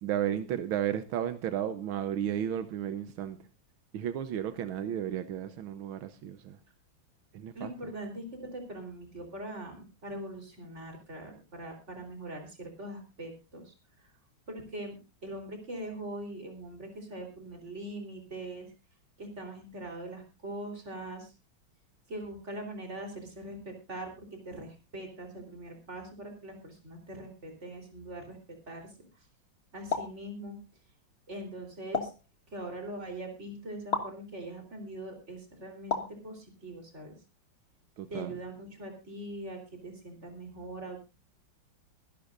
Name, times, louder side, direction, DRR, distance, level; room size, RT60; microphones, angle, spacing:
voice 1, 0.0-3.4 3.9-6.6 7.3-7.7 38.0-38.4, right 10 dB, 85° right, 1.7 m, -33 dB
voice 2, 7.5-14.1 14.5-18.7 19.2-21.3 22.1-28.4 28.7-29.3 29.7-30.6 31.3-32.1 32.5-37.2 38.1-41.1, right 1 dB, 35° right, 4.0 m, -42 dB
sound 1, 29.9-30.2 31.9-32.3 33.9-34.2 35.9-36.2, left 4 dB, 35° left, 1.8 m, -32 dB
23.5 x 11.5 x 2.5 m
omnidirectional pair, 2.2 m